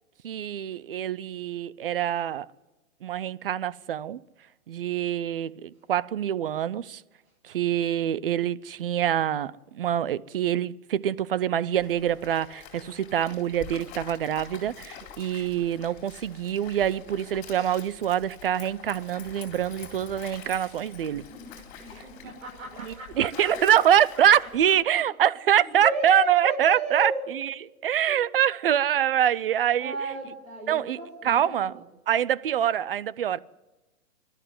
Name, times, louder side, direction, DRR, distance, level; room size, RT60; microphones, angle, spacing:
voice 1, 0.2-2.5 3.0-4.2 4.7-7.0 7.4-21.2 22.8-27.5 27.8-30.1 30.7-31.0 31.2-31.7 32.1-33.4, right 10 dB, 40° right, 0.6 m, -25 dB
Stream, 11.7-24.8, left 7 dB, 20° left, 4.0 m, -46 dB
voice 2, 21.1-24.7 25.6-27.2 28.1-28.2 29.8-31.8, right 1 dB, 60° right, 7.2 m, -35 dB
25.5 x 13.0 x 9.5 m
hypercardioid pair, 155°, 43 cm